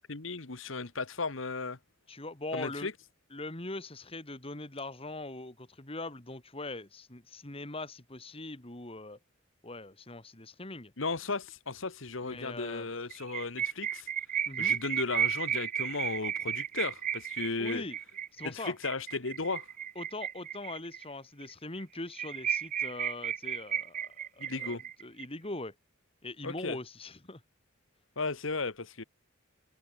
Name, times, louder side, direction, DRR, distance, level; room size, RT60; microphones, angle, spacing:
voice 1, 0.1-1.8 2.5-2.9 11.0-14.1 14.6-17.8 18.4-19.7 24.4-24.8 26.4-26.8 28.2-29.0, left 3 dB, 75° left, 1.6 m, -35 dB
voice 2, 2.1-2.9 3.3-9.2 9.6-10.9 12.2-12.9 14.5-14.8 17.6-18.0 18.3-18.7 20.0-25.7 26.2-27.4, left 2 dB, 30° left, 2.4 m, -41 dB
sound 1, 13.1-21.0 21.4-21.5 21.8-21.9 22.1-25.2, right 9 dB, 40° right, 0.9 m, -33 dB
head